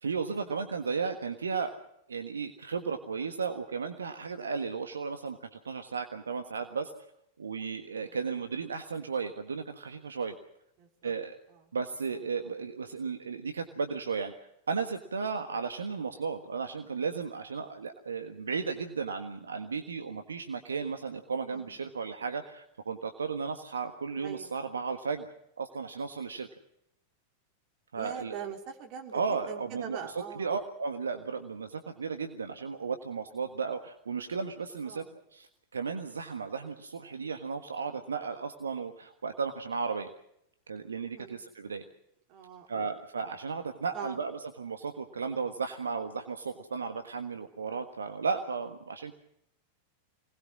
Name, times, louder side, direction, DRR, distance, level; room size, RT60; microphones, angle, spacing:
voice 1, 0.0-1.7 2.1-6.9 7.4-10.4 11.0-11.4 11.7-14.3 14.7-25.3 25.6-26.5 27.9-28.5 29.1-35.0 35.3-40.1 40.7-41.8 42.7-49.1, right 5 dB, 70° right, 7 dB, 1.5 m, -34 dB
voice 2, 10.8-11.1 21.5-21.7 24.2-24.5 28.0-30.5 34.9-35.1 41.2-41.4 42.3-42.8 43.9-44.2, right 8 dB, 40° right, 3 dB, 4.1 m, -42 dB
26.0 x 20.0 x 6.2 m, 0.77 s
figure-of-eight pair, 90°, 0 cm